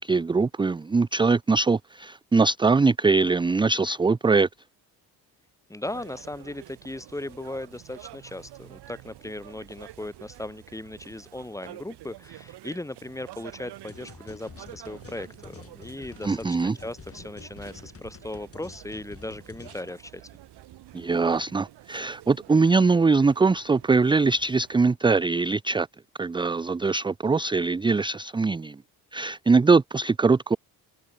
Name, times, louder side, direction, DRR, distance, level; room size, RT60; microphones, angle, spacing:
voice 1, 0.0-4.5 16.2-16.8 20.9-25.9 26.2-28.8 29.1-30.6, right 4 dB, 10° right, 0.4 m, -22 dB
voice 2, 5.7-20.2, left 1 dB, 10° left, 1.0 m, -37 dB
sound 1, 5.8-24.9, right 15 dB, 75° right, 1.9 m, -48 dB
sound 2, 13.9-19.9, left 5 dB, 35° left, 3.2 m, -48 dB
open air
supercardioid pair, 75°, 40 cm